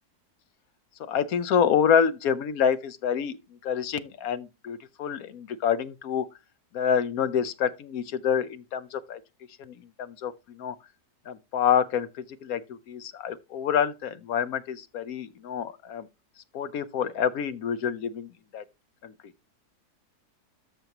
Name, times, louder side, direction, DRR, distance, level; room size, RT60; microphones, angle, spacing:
voice 1, 1.0-3.4 3.6-6.3 6.7-9.2 9.6-10.8 11.3-16.1 16.5-18.6 19.0-19.1, left 8 dB, 70° left, 1.1 m, -27 dB
13.5 x 5.3 x 2.9 m
omnidirectional pair, 1.7 m